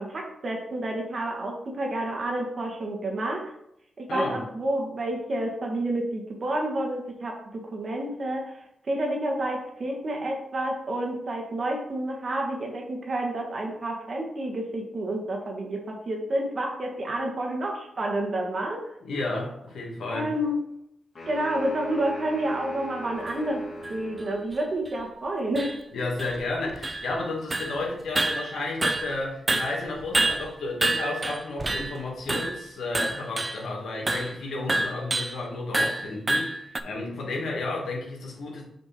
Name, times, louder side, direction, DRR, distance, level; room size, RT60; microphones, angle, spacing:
voice 1, 0.0-3.5 4.0-18.9 20.1-20.6 21.3-23.6 23.9-25.8, right 1 dB, 55° right, 1 dB, 1.7 m, -29 dB
voice 2, 4.1-4.4 19.0-20.3 25.9-38.6, left 2 dB, 75° left, -1 dB, 2.0 m, -32 dB
sound 1, 21.1-24.5, equal, 55° left, 2.4 m, -40 dB
sound 2, 23.3-23.4 23.8-23.9 24.5-24.6 24.9-25.0 25.6-25.8 26.2-27.3 27.5-27.8 28.2-29.2 29.5-32.0 32.3-32.6 32.9-33.6 34.1-34.4 34.7-35.4 35.7-36.8, right 2 dB, 30° right, 0.5 m, -28 dB
6.6 x 3.5 x 4.4 m, 0.77 s
supercardioid pair, 50°, 0 cm